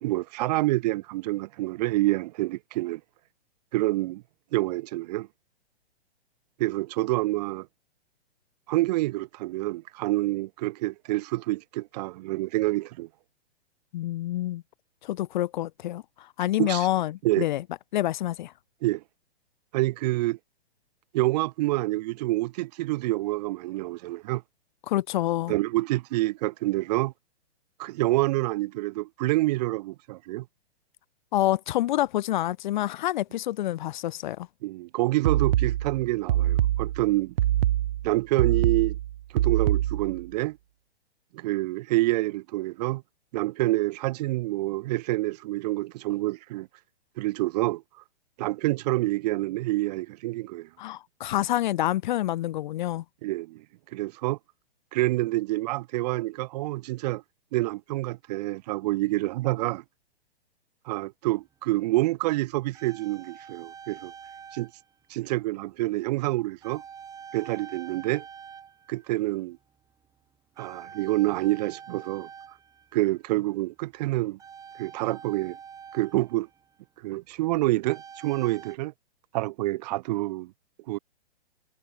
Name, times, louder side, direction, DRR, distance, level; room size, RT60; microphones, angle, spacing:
voice 1, 0.0-3.0 3.7-4.2 4.5-5.3 6.6-7.7 8.7-13.1 16.6-16.9 17.2-17.5 18.8-19.0 19.7-20.4 21.1-24.4 25.5-27.1 27.8-30.4 34.6-37.3 38.0-39.0 39.3-40.6 41.3-43.0 43.3-46.7 47.2-47.8 48.4-50.7 53.2-53.6 53.9-54.4 54.9-57.2 57.5-59.8 60.9-64.1 64.5-64.7 65.1-66.8 67.3-68.2 68.9-69.6 70.6-72.3 72.9-74.4 74.8-75.6 75.9-76.5 77.0-78.9 79.3-80.5 80.9-81.0, right 18 dB, 40° right, 1.1 m, -27 dB
voice 2, 13.9-14.6 15.0-17.6 17.9-18.5 24.9-25.5 31.3-34.5 50.8-53.0, left 14 dB, 45° left, 0.8 m, -27 dB
sound 1, 35.3-40.2, right 13 dB, 60° right, 0.4 m, -25 dB
sound 2, 61.3-61.4 62.3-64.9 65.2-65.5 66.6-69.4 69.7-70.1 70.6-73.2 74.4-76.8 77.9-78.8, right 7 dB, 10° right, 1.1 m, -46 dB
hypercardioid pair, 125°, 32 cm